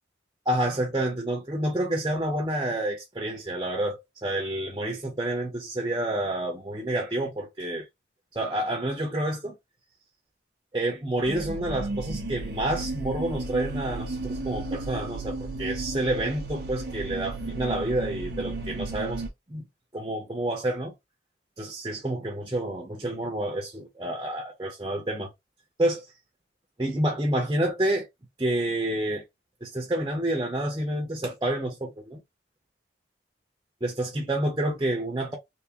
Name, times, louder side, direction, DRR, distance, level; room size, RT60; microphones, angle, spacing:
voice 1, 0.5-7.9 8.3-9.6 10.7-19.2 19.5-19.7 19.9-20.9 21.6-25.3 25.8-26.1 26.8-28.1 28.4-29.2 29.6-32.2 33.8-35.4, right 1 dB, 20° right, 0.8 m, -29 dB
sound 1, 11.2-19.3, right 2 dB, 55° right, 0.9 m, -34 dB
3.5 x 3.0 x 2.9 m
head